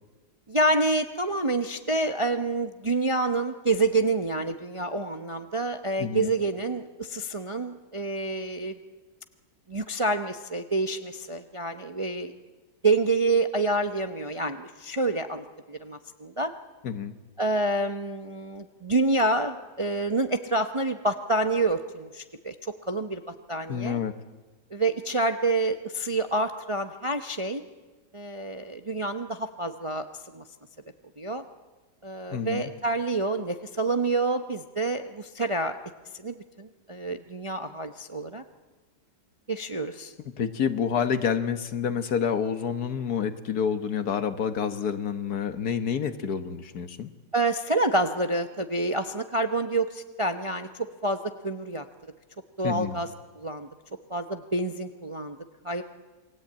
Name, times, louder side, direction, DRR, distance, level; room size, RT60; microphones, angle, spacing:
voice 1, 0.5-8.7 9.7-12.4 12.8-16.5 17.4-22.5 22.8-24.0 24.7-27.6 28.1-30.1 30.3-30.4 31.2-31.4 32.0-35.8 36.2-38.4 39.5-40.1 47.3-51.9 52.6-53.7 54.1-55.4 55.6-55.8, right 2 dB, 25° right, 7 dB, 0.7 m, -28 dB
voice 2, 23.7-24.1 32.3-32.7 40.4-47.1 52.6-53.0, left 7 dB, 60° left, 10 dB, 1.6 m, -28 dB
28.0 x 22.0 x 8.7 m, 1.2 s
omnidirectional pair, 1.9 m